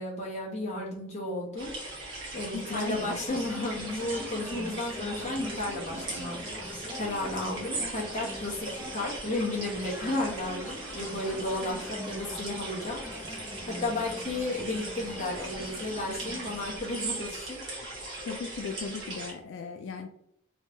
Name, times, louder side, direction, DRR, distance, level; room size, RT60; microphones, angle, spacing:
voice 1, 0.0-1.7 2.1-17.6, left 2 dB, 35° left, -4 dB, 1.1 m, -33 dB
sound 1, 1.6-19.3, right 2 dB, 60° right, 1.4 m, -39 dB
voice 2, 2.5-3.2 18.3-20.1, left 5 dB, 70° left, 4 dB, 0.3 m, -37 dB
sound 2, 3.3-16.8, left 1 dB, 10° right, 0.6 m, -43 dB
3.3 x 3.2 x 2.6 m, 0.74 s
head